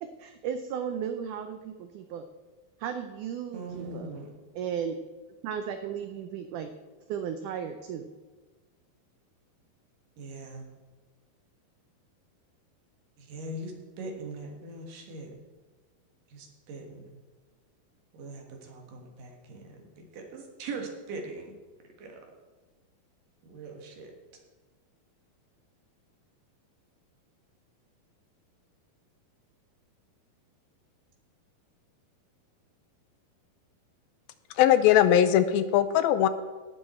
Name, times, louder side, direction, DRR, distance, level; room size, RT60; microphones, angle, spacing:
voice 1, 0.0-2.3 2.8-4.1 4.6-5.0 5.4-6.7 7.1-8.1, right 8 dB, 85° right, 8 dB, 1.7 m, -35 dB
voice 2, 3.5-4.3 10.2-10.6 13.2-15.3 16.3-17.1 18.1-21.5 21.8-22.2 23.4-24.1, right 2 dB, 65° right, 2 dB, 3.1 m, -41 dB
voice 3, 34.6-36.3, left 11 dB, 80° left, 12 dB, 2.4 m, -20 dB
17.0 x 7.1 x 4.3 m, 1.3 s
omnidirectional pair, 4.3 m